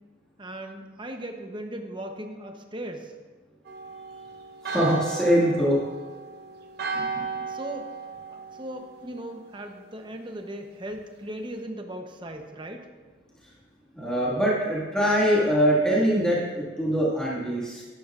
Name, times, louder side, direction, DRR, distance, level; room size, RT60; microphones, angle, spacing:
voice 1, 0.4-3.1 7.5-7.9 8.3-12.9, right 1 dB, 25° right, 4 dB, 0.8 m, -38 dB
Church bell, 3.7-9.4, right 4 dB, 55° right, 0.9 m, -35 dB
voice 2, 4.6-5.8 6.9-7.2 14.0-17.8, equal, 5° left, -7 dB, 1.8 m, -23 dB
12.0 x 11.5 x 2.5 m, 1.4 s
head